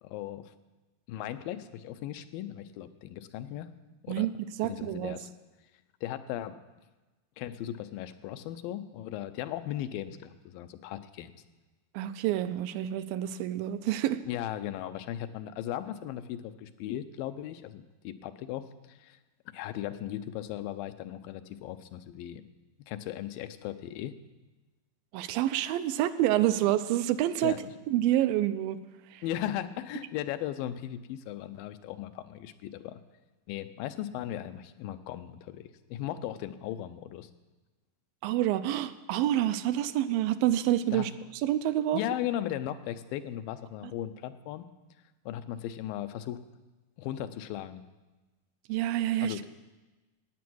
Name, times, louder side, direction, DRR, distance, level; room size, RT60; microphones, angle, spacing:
voice 1, 0.0-0.5 1.1-3.7 4.0-4.3 4.6-5.3 6.0-6.6 7.4-11.4 14.2-19.2 19.5-22.4 22.9-24.1 27.4-27.7 29.2-33.0 33.5-37.3 40.9-41.1 41.9-44.7 45.3-46.4 47.0-47.8 49.2-49.5, left 12 dB, 90° left, 10 dB, 2.4 m, -37 dB
voice 2, 4.6-5.2 11.9-14.2 25.1-27.6 27.9-28.8 29.1-29.2 38.2-41.1 41.4-42.0 48.7-49.4, right 13 dB, 90° right, 11 dB, 2.4 m, -27 dB
15.5 x 9.3 x 6.2 m, 1.2 s
omnidirectional pair, 4.1 m